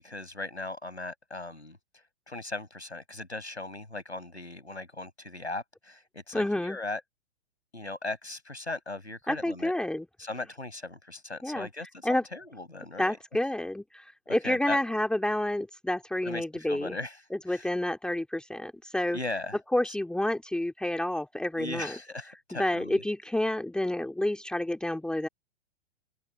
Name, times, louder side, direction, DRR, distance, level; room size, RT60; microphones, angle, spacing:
voice 1, 0.0-7.0 7.7-9.7 10.2-13.2 14.4-14.8 16.2-17.7 19.1-19.6 19.8-20.0 21.6-23.0, left 2 dB, 90° left, 6.7 m, -38 dB
voice 2, 6.3-6.8 9.3-10.1 11.4-11.7 12.0-12.2 13.0-17.0 17.5-19.2 19.7-21.9 22.6-25.3, left 1 dB, ahead, 2.2 m, -29 dB
open air
figure-of-eight pair, 110°, 33 cm